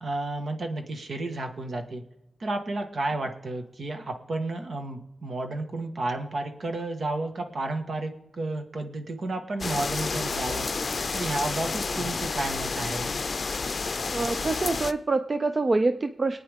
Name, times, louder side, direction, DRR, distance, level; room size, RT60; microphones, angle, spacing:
voice 1, 0.0-2.0 2.4-10.7 11.1-13.2, right 2 dB, 65° right, 5 dB, 1.5 m, -32 dB
sound 1, 9.6-14.9, left 4 dB, 50° left, 0.5 m, -30 dB
voice 2, 14.1-16.4, right 3 dB, 40° right, 9 dB, 0.5 m, -25 dB
24.0 x 9.0 x 3.6 m, 0.93 s
wide cardioid pair, 100°, 0 cm